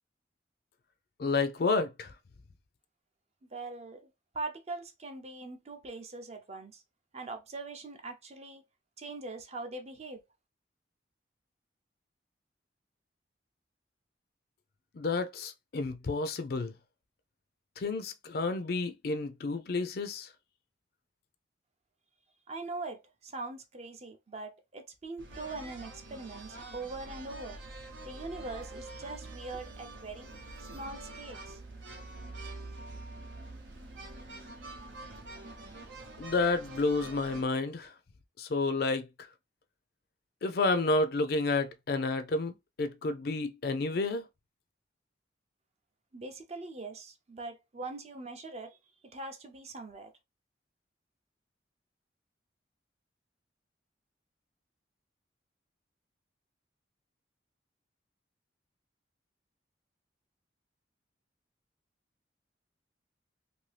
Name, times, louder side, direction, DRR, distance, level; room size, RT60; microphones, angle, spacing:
voice 1, 1.2-2.1 14.9-16.7 17.8-20.3 36.2-37.9 38.4-39.3 40.4-44.2, left 3 dB, 55° left, 0.4 m, -30 dB
voice 2, 3.5-4.1 4.3-6.8 7.1-8.6 9.0-10.2 22.5-27.6 28.0-31.6 46.1-48.8 49.0-50.1, right 3 dB, 35° right, 0.6 m, -42 dB
sound 1, 25.2-37.4, right 2 dB, 75° right, 0.7 m, -45 dB
2.7 x 2.7 x 3.2 m
head